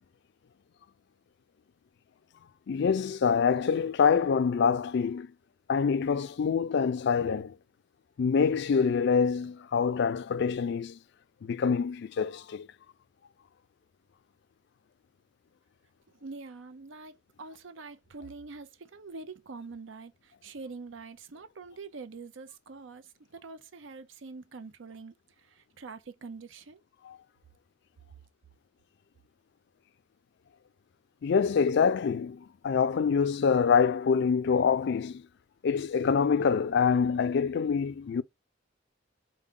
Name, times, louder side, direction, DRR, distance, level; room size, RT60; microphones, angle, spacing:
voice 1, 2.7-5.3 5.7-7.5 8.2-11.0 11.4-12.7 27.1-27.2 31.2-35.2 35.6-38.2, left 6 dB, 65° left, 0.4 m, -25 dB
voice 2, 16.2-26.8, right 4 dB, 75° right, 0.6 m, -45 dB
4.6 x 2.1 x 3.6 m
head